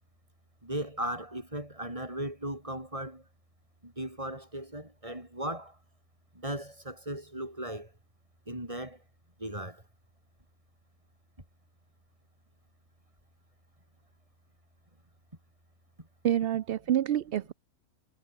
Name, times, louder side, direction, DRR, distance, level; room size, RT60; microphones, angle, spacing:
voice 1, 0.6-3.2 3.8-5.8 6.3-7.9 8.5-9.0 9.4-9.8 16.0-16.1, right 1 dB, 25° right, 5.8 m, -37 dB
voice 2, 16.2-17.5, right 11 dB, 60° right, 0.7 m, -27 dB
omnidirectional pair, 1.3 m